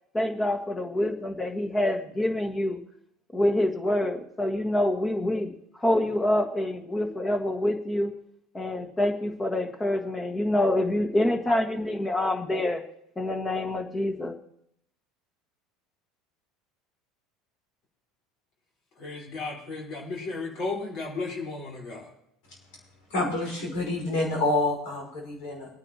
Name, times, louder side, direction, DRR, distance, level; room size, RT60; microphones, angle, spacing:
voice 1, 0.1-2.8 3.3-5.5 5.8-8.1 8.5-12.8 13.1-14.4, left 1 dB, 15° left, 5 dB, 1.7 m, -26 dB
voice 2, 19.0-22.1, left 3 dB, 55° left, -3 dB, 4.5 m, -34 dB
voice 3, 23.1-25.7, left 2 dB, 70° left, 0 dB, 5.3 m, -27 dB
22.0 x 9.7 x 3.0 m, 0.74 s
hypercardioid pair, 80°, 0 cm